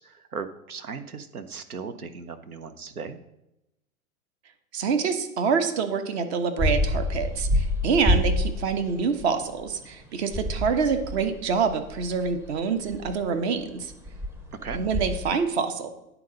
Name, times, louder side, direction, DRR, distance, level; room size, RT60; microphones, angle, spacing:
voice 1, 0.0-3.2 14.6-14.8, right 5 dB, 85° right, 10 dB, 0.9 m, -37 dB
voice 2, 4.7-13.9 14.7-15.9, right 5 dB, 50° right, 7 dB, 1.1 m, -26 dB
sound 1, 6.6-15.3, left 1 dB, 5° right, 0.6 m, -28 dB
9.4 x 4.0 x 5.6 m, 0.88 s
figure-of-eight pair, 105°, 43 cm